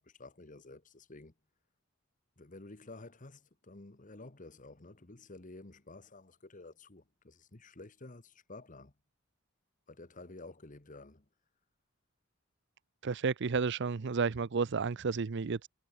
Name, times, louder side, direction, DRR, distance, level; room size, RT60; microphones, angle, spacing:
voice 1, 0.0-1.3 2.4-8.9 9.9-11.3, left 2 dB, 40° left, 1.4 m, -51 dB
voice 2, 13.0-15.7, right 5 dB, 60° right, 0.6 m, -32 dB
head